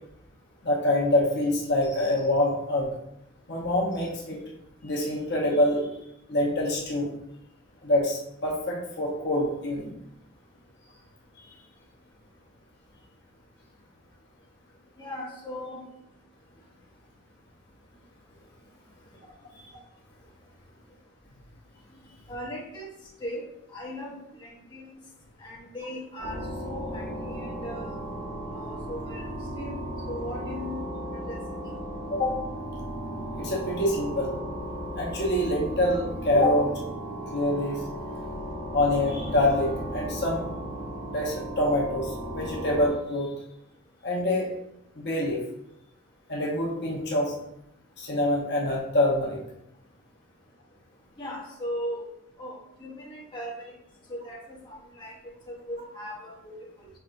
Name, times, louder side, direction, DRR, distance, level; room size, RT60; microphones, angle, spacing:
voice 1, 0.6-3.0 3.5-4.4 4.8-5.9 6.3-7.1 7.8-9.9 11.5-11.6 32.1-32.3 33.4-34.3 35.0-36.7 37.3-37.8 38.7-40.4 41.1-43.3 44.0-44.5 44.9-45.4 46.3-47.3 48.0-49.4, left 1 dB, 55° left, -3 dB, 1.0 m, -25 dB
voice 2, 15.0-15.9 22.3-22.9 23.2-23.4 23.7-24.9 25.4-27.9 28.5-29.2 29.5-29.8 30.1-30.8 31.1-31.4 31.6-31.7 51.2-52.1 52.4-53.6 54.1-56.6, equal, 25° left, -5 dB, 1.0 m, -38 dB
sound 1, 26.2-42.9, equal, 60° right, 1.6 m, -35 dB
5.7 x 3.3 x 2.6 m, 0.82 s
head